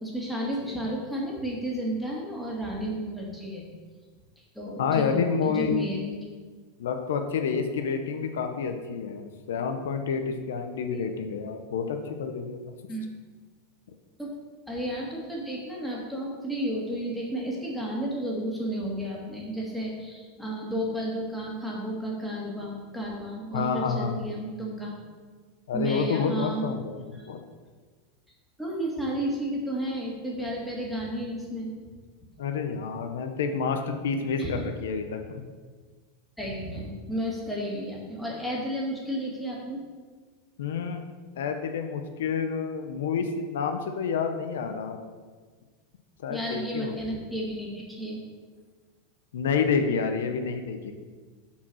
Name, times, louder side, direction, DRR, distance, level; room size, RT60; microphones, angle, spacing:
voice 1, 0.0-3.7 4.5-6.2 10.9-11.0 12.9-13.0 14.2-14.3 14.7-24.9 25.7-26.7 27.1-27.3 28.6-31.7 34.4-34.6 36.4-39.8 46.3-48.2, right 1 dB, ahead, -4 dB, 2.2 m, -32 dB
voice 2, 4.8-5.7 6.8-12.6 23.5-24.2 25.7-27.4 32.4-35.4 40.6-41.0 41.4-45.0 46.2-47.1 49.3-50.9, left 6 dB, 85° left, 6 dB, 0.8 m, -29 dB
7.0 x 4.7 x 6.2 m, 1.5 s
supercardioid pair, 125°, 0 cm